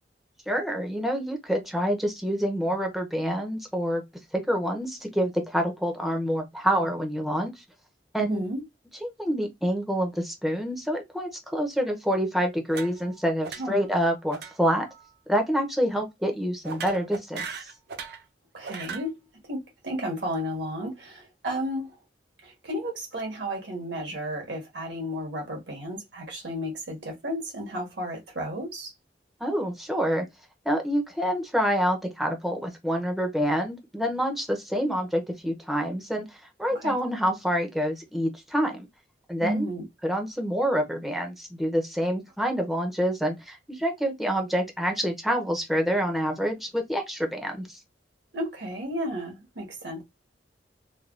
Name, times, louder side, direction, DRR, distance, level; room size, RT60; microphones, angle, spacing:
voice 1, 0.5-4.0 4.3-7.5 8.1-8.4 9.0-14.9 15.3-17.4 29.4-30.3 30.7-38.8 39.3-39.7 40.0-47.7, equal, ahead, 0.6 m, -27 dB
voice 2, 8.3-8.6 13.6-13.8 18.5-19.1 19.5-22.0 22.4-28.9 36.7-37.0 39.4-39.8 48.3-50.0, equal, 85° right, 1.3 m, -33 dB
sound 1, 12.7-13.2 13.4-13.9 14.3-14.5 14.8-15.1 16.6-18.2 18.6-19.1, right 5 dB, 65° right, 0.5 m, -38 dB
3.2 x 2.3 x 2.4 m
head